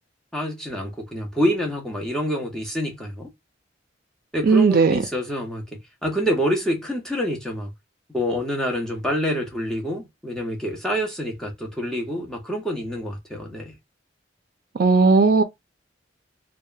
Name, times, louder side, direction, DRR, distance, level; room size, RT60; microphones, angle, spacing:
voice 1, 0.3-3.3 4.3-5.6 6.0-7.7 8.1-13.7, equal, 5° left, 0.6 m, -27 dB
voice 2, 4.4-5.0 14.7-15.4, right 4 dB, 50° right, 0.4 m, -16 dB
2.8 x 2.1 x 2.3 m
head